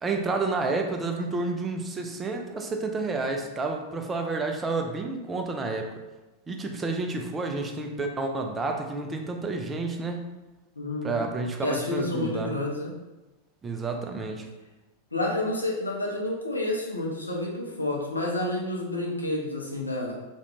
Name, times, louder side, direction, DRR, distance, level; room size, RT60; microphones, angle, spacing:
voice 1, 0.0-5.9 6.5-10.2 11.0-12.5 13.6-14.5, right 3 dB, 15° right, 3 dB, 0.3 m, -30 dB
voice 2, 10.8-11.2 11.6-12.9 15.1-20.1, left 2 dB, 80° left, -2 dB, 0.5 m, -29 dB
2.4 x 2.2 x 3.0 m, 1.1 s
figure-of-eight pair, 90°, 0 cm